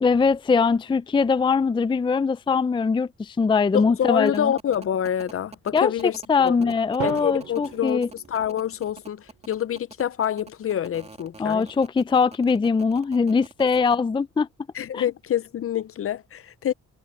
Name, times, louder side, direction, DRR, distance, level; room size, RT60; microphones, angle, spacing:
voice 1, 0.0-4.5 5.7-5.9 6.3-8.1 11.4-14.5 14.9-15.0, left 5 dB, 15° left, 0.4 m, -22 dB
voice 2, 3.7-6.7 7.0-11.7 14.7-16.7, left 10 dB, 50° left, 0.7 m, -27 dB
sound 1, 4.3-14.0, right 3 dB, 20° right, 3.0 m, -44 dB
Drum, 7.0-9.1, right 11 dB, 75° right, 2.6 m, -37 dB
cardioid pair, 90°, 30 cm